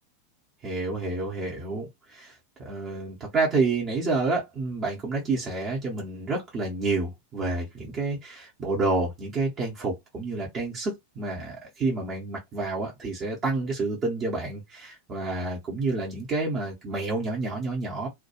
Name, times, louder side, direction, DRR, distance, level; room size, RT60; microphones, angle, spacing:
voice 1, 0.6-2.3 2.6-18.1, right 3 dB, 30° right, 0.8 m, -29 dB
2.3 x 2.2 x 2.8 m
figure-of-eight pair, 90°, 0 cm